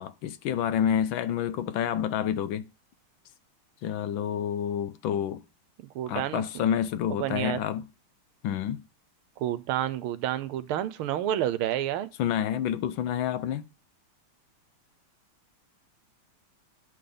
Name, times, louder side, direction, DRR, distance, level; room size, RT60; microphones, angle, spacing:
voice 1, 0.0-2.7 3.8-5.4 6.1-7.9 8.4-8.8 12.2-13.7, left 9 dB, 75° left, 1.3 m, -28 dB
voice 2, 5.8-6.4 7.2-7.6 9.4-12.1, right 11 dB, 80° right, 1.6 m, -29 dB
9.9 x 3.8 x 6.8 m
omnidirectional pair, 2.4 m